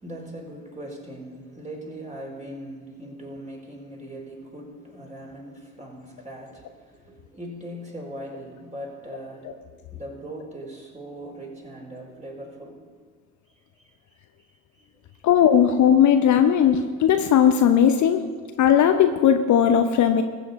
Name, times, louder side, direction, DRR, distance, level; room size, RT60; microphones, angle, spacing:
voice 1, 0.0-9.5 9.9-12.9, right 1 dB, 15° right, 0 dB, 4.0 m, -39 dB
voice 2, 15.2-18.2 18.6-20.2, left 9 dB, 45° left, 7 dB, 0.8 m, -18 dB
21.0 x 7.8 x 4.3 m, 1.5 s
figure-of-eight pair, 50°, 40 cm